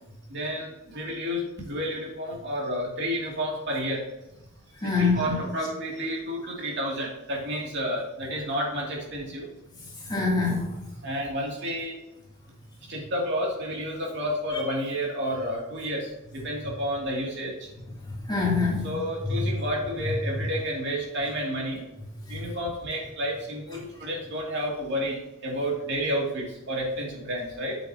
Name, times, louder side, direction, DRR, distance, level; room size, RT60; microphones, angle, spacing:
voice 1, 0.3-4.0 4.8-9.5 11.0-12.0 12.9-17.7 18.8-21.8 22.3-25.2 25.4-27.8, equal, 60° right, -3 dB, 2.7 m, -30 dB
voice 2, 4.8-5.4 10.1-10.7 18.3-18.9 19.4-19.5 22.3-22.4, left 4 dB, 20° left, -4 dB, 2.8 m, -24 dB
8.9 x 7.7 x 2.9 m, 0.95 s
head